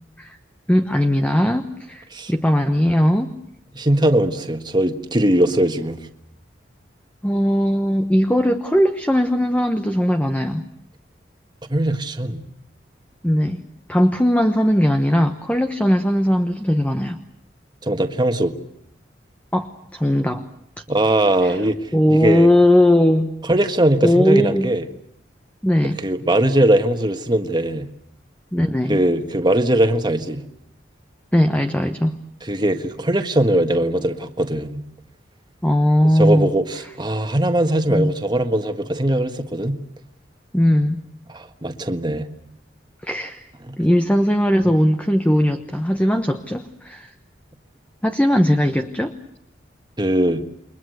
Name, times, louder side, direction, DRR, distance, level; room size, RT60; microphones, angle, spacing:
voice 1, 0.7-3.3 7.2-10.6 13.2-13.6 13.9-17.2 19.5-20.4 21.4-21.6 21.9-23.3 24.0-24.7 25.6-26.0 28.5-29.0 31.3-32.1 35.6-36.5 37.9-38.1 40.5-41.0 43.0-43.5 43.8-47.1 48.0-49.1, equal, 10° left, 7 dB, 1.1 m, -18 dB
voice 2, 3.7-6.0 11.7-12.4 17.8-18.5 20.9-21.8 22.1-22.5 23.5-24.8 26.0-27.8 28.9-30.4 32.5-34.8 36.2-39.8 41.3-42.2 43.7-43.8 50.0-50.4, right 1 dB, 25° right, 7 dB, 1.7 m, -20 dB
29.5 x 22.5 x 8.0 m, 0.74 s
head